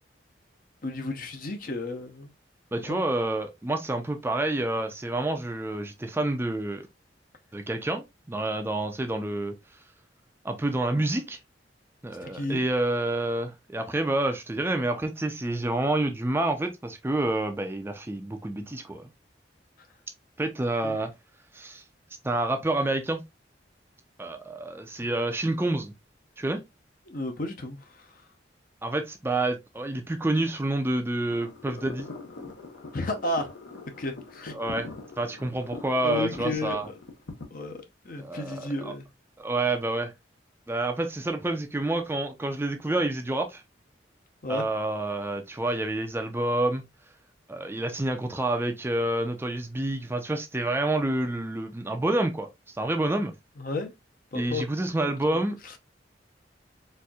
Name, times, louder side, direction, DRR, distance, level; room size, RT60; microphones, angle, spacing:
voice 1, 0.8-2.3 2.9-3.0 12.2-12.6 20.8-21.0 27.1-28.1 32.9-33.5 34.0-34.5 36.0-36.9 37.5-39.1 44.4-44.7 53.6-53.9 54.3-54.6 55.3-55.8, left 2 dB, 50° left, 0.7 m, -33 dB
voice 2, 2.7-6.9 7.5-9.5 10.4-11.4 12.0-19.1 20.4-21.1 21.5-21.8 22.2-23.2 24.2-25.9 26.4-26.6 28.8-32.1 34.5-34.9 35.2-36.9 38.2-38.9 39.4-40.1 40.7-43.6 44.5-46.8 47.5-53.3 54.3-55.6, right 2 dB, 15° right, 0.4 m, -28 dB
sound 1, 31.3-37.4, left 3 dB, 85° left, 0.8 m, -42 dB
4.2 x 2.6 x 2.3 m
head